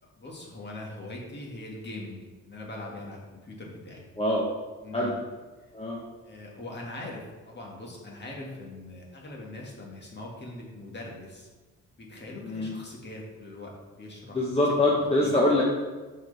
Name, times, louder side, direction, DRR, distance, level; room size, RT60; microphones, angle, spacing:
voice 1, 0.0-4.1 4.8-5.2 5.6-5.7 6.2-11.5 12.0-14.7 15.2-15.4, left 2 dB, 35° left, -2 dB, 1.9 m, -42 dB
voice 2, 5.7-6.0 12.4-12.7 14.3-15.7, left 1 dB, 20° left, -4 dB, 1.1 m, -24 dB
7.9 x 4.7 x 3.4 m, 1.2 s
cardioid pair, 90°, 30 cm